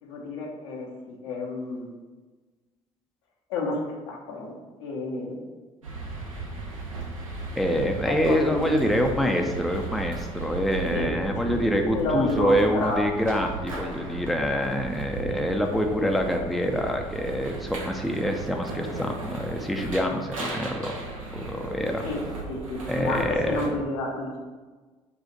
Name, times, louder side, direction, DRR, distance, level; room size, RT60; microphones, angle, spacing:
voice 1, 0.0-1.9 3.5-4.5 4.8-5.5 8.0-8.8 10.9-11.6 11.9-13.3 22.0-24.4, left 2 dB, 70° left, -2 dB, 0.8 m, -30 dB
sound 1, 5.8-23.7, right 2 dB, 85° right, 0.5 m, -36 dB
voice 2, 7.6-20.9 21.3-22.0 22.9-23.6, equal, ahead, 3 dB, 0.4 m, -26 dB
3.8 x 2.4 x 4.1 m, 1.3 s
figure-of-eight pair, 50°, 17 cm